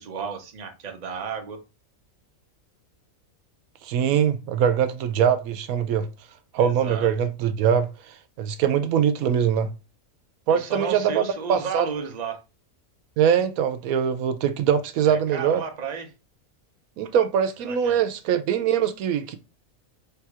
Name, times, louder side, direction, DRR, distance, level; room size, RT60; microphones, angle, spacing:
voice 1, 0.0-1.6 6.6-7.1 10.5-12.4 15.0-16.1 17.6-18.1, right 6 dB, 35° right, 0.7 m, -33 dB
voice 2, 3.8-6.1 6.5-9.7 10.5-11.2 11.5-11.9 13.2-15.6 17.0-19.4, right 8 dB, 90° right, 1.1 m, -22 dB
3.5 x 2.9 x 4.7 m
omnidirectional pair, 1.4 m